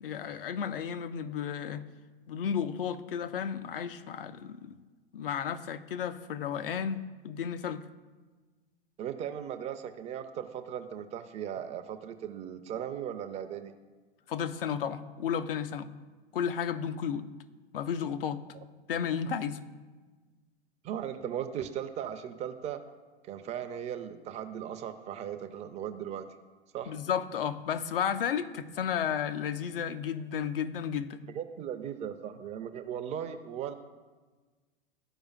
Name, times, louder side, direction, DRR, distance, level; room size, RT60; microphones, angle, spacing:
voice 1, 0.0-1.8 2.3-4.8 5.1-7.8 14.3-15.9 16.3-17.3 17.7-18.4 18.9-19.6 26.9-31.2, left 8 dB, 70° left, 11 dB, 0.7 m, -33 dB
voice 2, 9.0-13.7 20.8-22.8 23.2-26.3 26.7-27.0 31.3-33.7, right 9 dB, 25° right, 9 dB, 0.5 m, -37 dB
13.0 x 4.9 x 2.4 m, 1.3 s
figure-of-eight pair, 100°, 30 cm